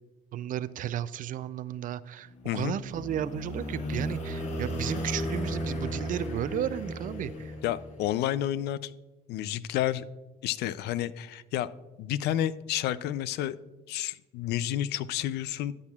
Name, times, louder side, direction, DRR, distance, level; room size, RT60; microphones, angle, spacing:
voice 1, 0.3-7.6, right 11 dB, 50° right, 16 dB, 0.4 m, -34 dB
sound 1, 2.3-8.1, equal, 45° left, 1.8 m, -35 dB
voice 2, 2.4-2.8 7.6-8.9 9.3-10.1 10.4-11.7 12.0-13.6 13.9-15.7, left 12 dB, 75° left, 17 dB, 0.4 m, -30 dB
13.0 x 8.6 x 2.4 m, 1.2 s
cardioid pair, 110°, 17 cm